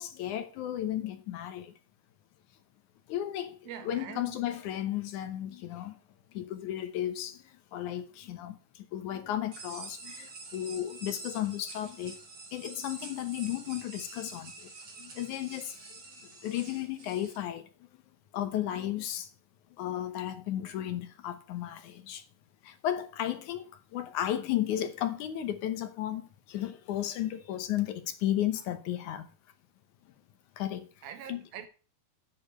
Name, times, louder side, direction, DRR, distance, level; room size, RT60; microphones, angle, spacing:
voice 1, 0.0-1.7 3.1-3.6 3.8-5.9 6.3-7.4 7.7-8.6 8.9-12.2 12.5-14.5 15.0-15.7 16.4-17.6 18.3-19.3 19.8-22.2 22.7-26.2 26.5-29.3 30.6-30.9 31.3-31.4, left 12 dB, 70° left, 2.1 m, -34 dB
voice 2, 3.7-4.4 31.0-31.7, right 9 dB, 85° right, 3.0 m, -43 dB
sound 1, 9.5-17.4, right 3 dB, 40° right, 2.9 m, -47 dB
8.8 x 5.1 x 7.7 m
omnidirectional pair, 4.2 m